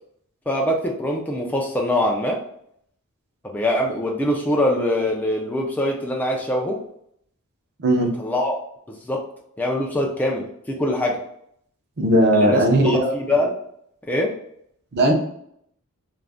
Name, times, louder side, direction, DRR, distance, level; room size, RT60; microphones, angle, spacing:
voice 1, 0.5-2.4 3.4-6.8 8.2-8.5 9.1-9.2 9.6-11.2 12.3-13.5 14.1-14.3, left 1 dB, 5° left, 0 dB, 0.3 m, -23 dB
voice 2, 7.8-8.1 12.0-13.1 14.9-15.1, right 1 dB, 45° right, 2 dB, 0.6 m, -17 dB
2.4 x 2.1 x 3.3 m, 0.70 s
head